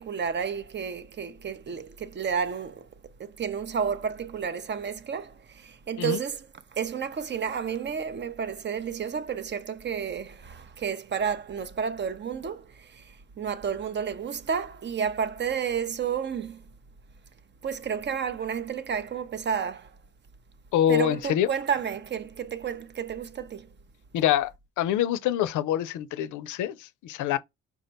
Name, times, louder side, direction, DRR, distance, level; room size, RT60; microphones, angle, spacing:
voice 1, 0.0-2.9 3.2-6.5 6.7-13.0 13.4-16.6 17.6-19.9 20.9-23.7, right 7 dB, 35° right, 0.5 m, -31 dB
voice 2, 20.7-21.5 24.1-24.5 24.8-27.4, left 11 dB, 80° left, 0.5 m, -25 dB
4.6 x 2.2 x 3.9 m
cardioid pair, 90°, 30 cm